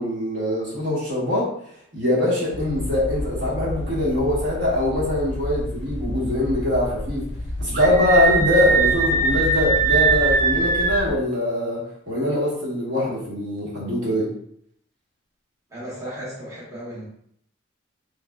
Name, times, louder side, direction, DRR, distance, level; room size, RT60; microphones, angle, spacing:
voice 1, 0.0-1.5 1.9-7.2 7.6-14.3, left 1 dB, 60° right, -6 dB, 1.3 m, -23 dB
sound 1, 2.5-11.2, left 1 dB, 60° left, 0.4 m, -30 dB
Screaming, 7.7-11.1, right 4 dB, 40° right, 0.4 m, -21 dB
voice 2, 15.7-17.1, right 1 dB, 15° right, -8 dB, 0.8 m, -35 dB
3.3 x 3.2 x 2.3 m, 0.68 s
head